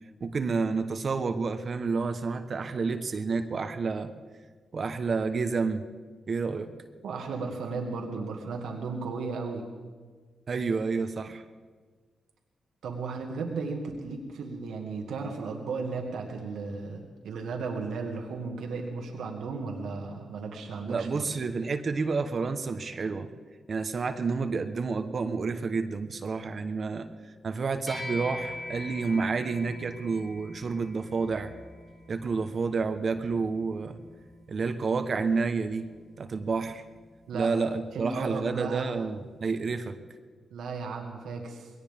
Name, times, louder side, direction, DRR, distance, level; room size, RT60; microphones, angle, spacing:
voice 1, 0.2-4.1 4.7-5.9 6.3-6.7 10.5-11.4 20.9-23.3 23.7-27.1 27.4-31.5 32.1-34.0 34.5-35.9 36.2-36.8 37.3-40.0, right 4 dB, 50° right, 8 dB, 1.1 m, -29 dB
voice 2, 7.0-9.6 12.8-21.2 37.3-37.5 37.9-38.9 40.5-41.7, right 4 dB, 85° right, 2 dB, 1.8 m, -35 dB
sound 1, 27.9-37.5, left 2 dB, 20° left, 5.1 m, -44 dB
21.5 x 18.0 x 3.6 m, 1.5 s
cardioid pair, 70°, 0 cm